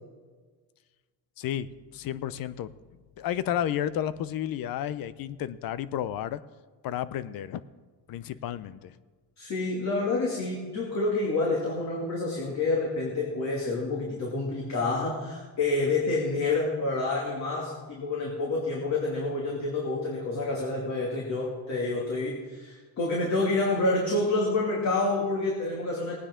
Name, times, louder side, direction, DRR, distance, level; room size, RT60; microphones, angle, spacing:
voice 1, 1.4-2.7 3.2-6.4 6.8-7.6 8.1-9.0, left 11 dB, 55° left, 16 dB, 0.7 m, -32 dB
voice 2, 9.4-26.2, left 2 dB, 40° left, -3 dB, 2.5 m, -28 dB
19.0 x 9.6 x 3.8 m, 1.4 s
cardioid pair, 125°, 42 cm